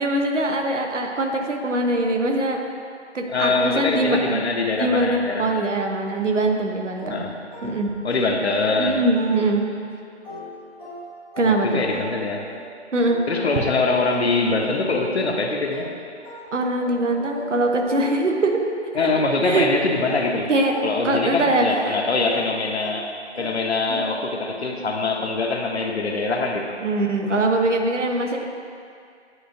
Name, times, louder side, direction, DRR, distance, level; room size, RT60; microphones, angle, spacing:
voice 1, 0.0-2.6 3.1-4.4 4.8-7.3 7.6-7.9 8.8-9.7 11.4-11.9 12.9-13.2 16.5-18.5 19.0-19.1 19.4-19.7 20.5-20.7 21.0-22.0 26.8-28.4, right 2 dB, 85° right, 2 dB, 1.0 m, -22 dB
voice 2, 3.3-5.7 7.1-7.3 8.0-9.0 11.4-12.5 13.3-15.9 18.9-20.5 20.8-23.1 23.4-26.7, left 3 dB, 65° left, 2 dB, 0.8 m, -23 dB
sound 1, 7.0-9.8 10.2-18.6 19.0-24.4, equal, 10° right, 1.0 m, -38 dB
9.9 x 3.9 x 2.7 m, 2.3 s
figure-of-eight pair, 170°, 35 cm